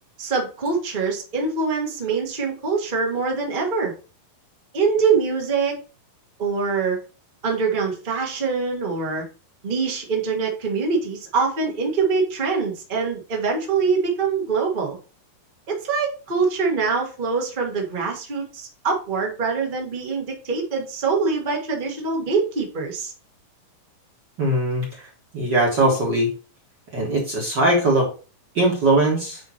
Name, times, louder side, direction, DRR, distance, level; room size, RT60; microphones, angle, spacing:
voice 1, 0.2-3.9 4.7-5.8 6.4-7.0 7.4-9.2 9.6-15.0 15.7-23.1, right 4 dB, 85° right, 0 dB, 0.4 m, -24 dB
voice 2, 24.4-24.8 25.3-26.3 26.9-28.1 28.6-29.4, right 1 dB, 40° right, -2 dB, 1.7 m, -20 dB
9.3 x 3.2 x 4.3 m, 0.35 s
omnidirectional pair, 3.9 m